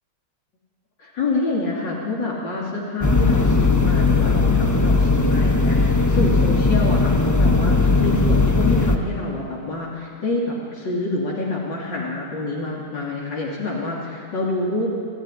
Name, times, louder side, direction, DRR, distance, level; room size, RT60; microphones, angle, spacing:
voice 1, 1.0-14.9, left 2 dB, 75° left, -5 dB, 3.6 m, -27 dB
sound 1, 3.0-9.0, left 3 dB, 15° left, 0.9 m, -18 dB
26.5 x 16.0 x 10.0 m, 2.4 s
omnidirectional pair, 1.9 m